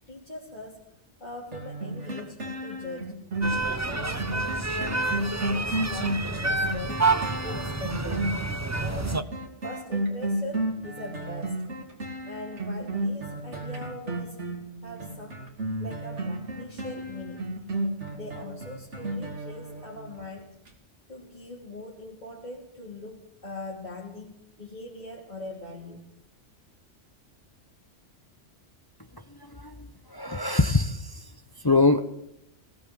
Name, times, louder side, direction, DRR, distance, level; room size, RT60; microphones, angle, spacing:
voice 1, 0.1-3.2 3.7-7.1 7.4-8.3 8.8-9.3 9.6-11.7 12.3-14.4 14.8-15.5 15.8-17.5 18.1-20.5 21.1-26.1, left 2 dB, 40° left, -4 dB, 3.2 m, -41 dB
sound 1, 1.5-20.2 20.7-20.8, right 1 dB, 75° right, 3.1 m, -32 dB
sound 2, 3.4-9.2, right 3 dB, 15° right, 0.9 m, -28 dB
voice 2, 29.4-31.2 31.6-32.0, left 3 dB, 20° left, 10 dB, 0.9 m, -24 dB
20.0 x 18.0 x 7.6 m, 0.78 s
omnidirectional pair, 1.2 m